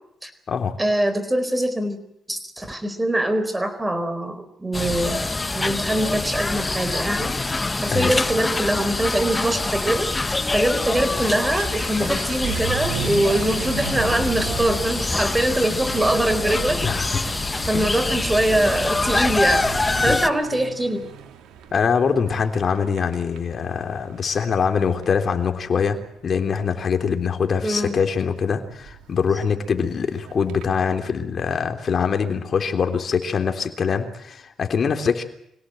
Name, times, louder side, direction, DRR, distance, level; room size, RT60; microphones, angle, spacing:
voice 1, 0.8-2.0 2.3-5.3 5.5-7.3 7.8-10.1 10.5-16.8 17.6-19.7 20.0-21.0 27.6-28.0, right 1 dB, 15° right, 11 dB, 4.4 m, -23 dB
sound 1, 4.7-20.3, left 2 dB, 20° left, 1.3 m, -25 dB
Vehicle / Accelerating revving vroom, 11.1-30.8, right 7 dB, 90° right, 2.9 m, -36 dB
voice 2, 21.7-26.0 26.2-35.2, left 6 dB, 45° left, 5 dB, 3.4 m, -23 dB
25.5 x 17.5 x 7.8 m, 0.74 s
cardioid pair, 90°, 0 cm